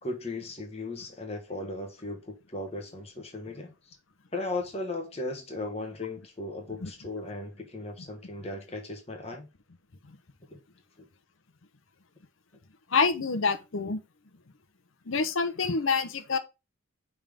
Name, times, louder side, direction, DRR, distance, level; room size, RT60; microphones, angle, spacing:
voice 1, 0.0-4.0 4.3-9.5 10.5-10.6 11.0-11.1, left 2 dB, 30° left, 1.2 m, -37 dB
voice 2, 12.9-14.0 15.1-16.4, left 4 dB, 75° left, 0.8 m, -27 dB
5.5 x 3.6 x 5.0 m
head